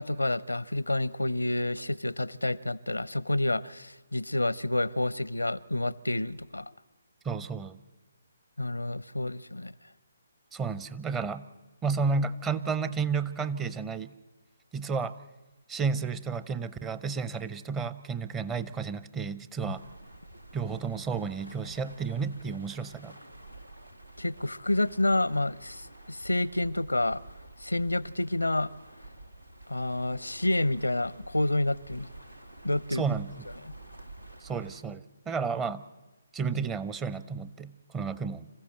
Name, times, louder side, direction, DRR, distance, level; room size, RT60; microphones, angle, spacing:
voice 1, 0.0-6.7 8.6-9.7 19.7-19.8 24.2-27.2 27.6-28.7 29.7-32.1 32.6-33.1 33.6-33.7, left 1 dB, 85° left, 21 dB, 0.6 m, -29 dB
voice 2, 7.2-7.8 10.5-11.4 11.8-14.1 14.7-15.1 15.7-19.8 20.5-23.1 32.9-33.3 34.4-35.8 36.3-38.5, right 5 dB, 15° right, 14 dB, 0.6 m, -32 dB
sound 1, 19.7-34.8, right 2 dB, 90° right, 1.5 m, -49 dB
26.5 x 15.0 x 7.8 m, 1.2 s
figure-of-eight pair, 140°, 0 cm